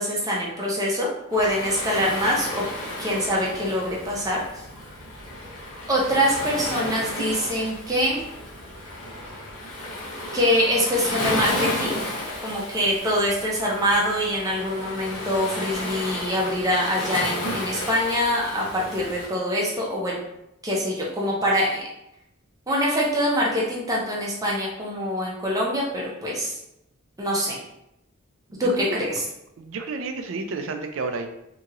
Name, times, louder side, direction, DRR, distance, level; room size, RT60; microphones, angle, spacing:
voice 1, 0.0-2.6 3.0-4.4 5.9-8.2 10.3-12.0 12.4-20.2 20.6-21.9 22.7-26.6 27.2-27.6 28.6-29.2, equal, 15° right, -4 dB, 0.6 m, -24 dB
Waves surf, 1.3-19.3, left 1 dB, 70° left, 1.0 m, -32 dB
voice 2, 28.5-28.9 29.6-31.3, right 3 dB, 65° right, 5 dB, 0.4 m, -31 dB
2.8 x 2.8 x 2.4 m, 0.83 s
head